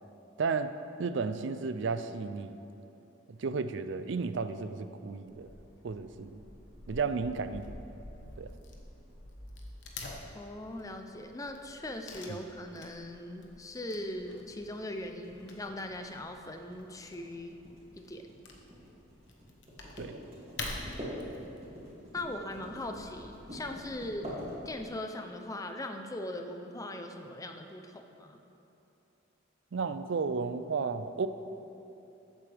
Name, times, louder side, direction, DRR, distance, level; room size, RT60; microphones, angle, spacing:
voice 1, 0.4-0.7 1.0-2.6 3.3-5.5 5.8-6.4 6.9-7.6 8.4-8.5 20.0-20.2 29.7-31.3, right 4 dB, 65° right, 11 dB, 0.4 m, -33 dB
Wood / Tearing, 5.3-24.9, left 2 dB, 65° left, 1.2 m, -48 dB
voice 2, 10.3-17.6 18.0-18.3 22.1-24.4 24.6-28.4, left 1 dB, 15° left, 5 dB, 0.6 m, -40 dB
sound 1, 14.0-25.1, equal, 30° right, 2.5 m, -45 dB
14.5 x 8.2 x 3.4 m, 2.9 s
head